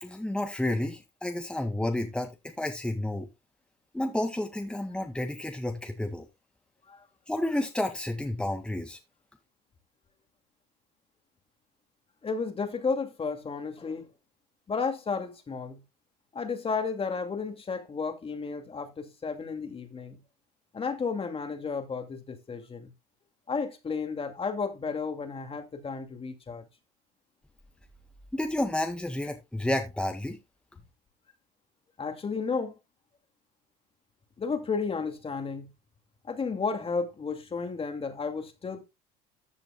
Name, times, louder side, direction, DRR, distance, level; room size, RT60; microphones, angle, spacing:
voice 1, 0.0-2.3 2.6-3.3 3.9-6.3 7.3-9.0 28.3-30.4, left 1 dB, 5° left, 2.0 m, -30 dB
voice 2, 12.2-14.1 14.7-15.8 16.3-20.2 20.7-22.9 23.5-26.6 32.0-32.7 34.4-35.7 36.3-38.8, left 5 dB, 30° left, 2.4 m, -32 dB
14.5 x 7.7 x 2.3 m
supercardioid pair, 85°, 20 cm